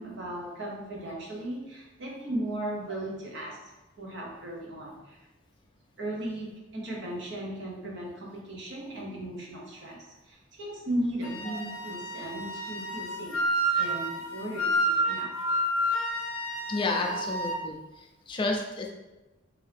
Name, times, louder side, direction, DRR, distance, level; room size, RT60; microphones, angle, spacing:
voice 1, 0.0-3.7 4.0-5.2 6.0-13.4 13.7-15.3, right 1 dB, 60° right, -2 dB, 0.8 m, -36 dB
Wind instrument woodwind instrument, 11.2-17.6, right 1 dB, 85° left, 0.5 m, -30 dB
voice 2, 16.7-18.9, left 3 dB, 25° left, 1 dB, 0.3 m, -31 dB
2.8 x 2.7 x 3.3 m, 1.1 s
head